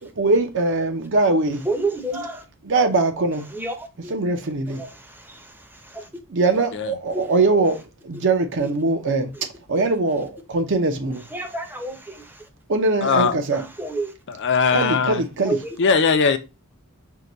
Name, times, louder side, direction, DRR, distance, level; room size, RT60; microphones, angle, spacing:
voice 1, 0.0-1.6 2.6-3.5 4.1-4.8 6.3-7.8 8.0-9.3 9.7-11.2 12.7-13.6 14.7-15.6, right 3 dB, 55° right, 0.6 m, -21 dB
voice 2, 1.7-2.4 3.5-4.1 4.8-4.9 5.3-5.4 5.9-6.1 7.1-7.2 11.3-12.2 13.5-14.1 15.5-15.8, right 2 dB, 10° right, 0.6 m, -28 dB
voice 3, 13.0-13.3 14.3-15.2 15.8-16.4, left 5 dB, 55° left, 0.5 m, -19 dB
4.6 x 2.2 x 3.8 m
head